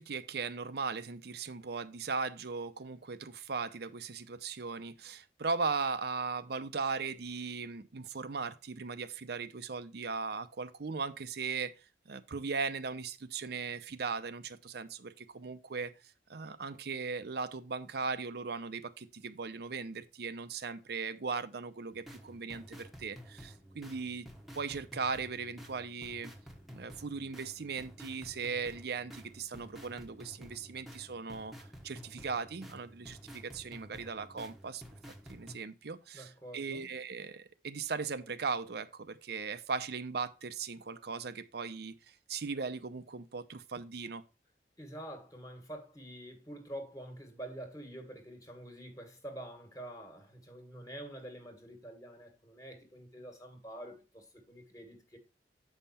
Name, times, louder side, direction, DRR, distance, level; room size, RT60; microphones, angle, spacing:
voice 1, 0.0-15.9 16.3-24.3 24.5-26.3 26.7-34.8 35.3-44.2, right 4 dB, 65° right, 0.7 m, -38 dB
sound 1, 21.9-35.6, equal, ahead, 1.1 m, -51 dB
voice 2, 36.1-36.9 44.8-55.2, right 1 dB, 20° left, 1.7 m, -47 dB
8.0 x 5.6 x 4.2 m
head